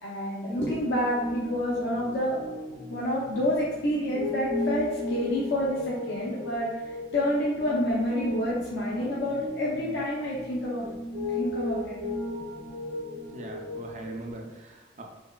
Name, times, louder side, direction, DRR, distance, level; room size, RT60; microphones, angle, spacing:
voice 1, 0.0-2.4 2.9-10.9 11.3-12.0, left 1 dB, 70° left, -6 dB, 0.5 m, -29 dB
Piano, 0.6-14.3, left 1 dB, 60° right, 0.8 m, -35 dB
voice 2, 13.3-15.0, right 1 dB, 40° right, 1 dB, 0.4 m, -40 dB
3.3 x 2.1 x 2.2 m, 1.2 s
head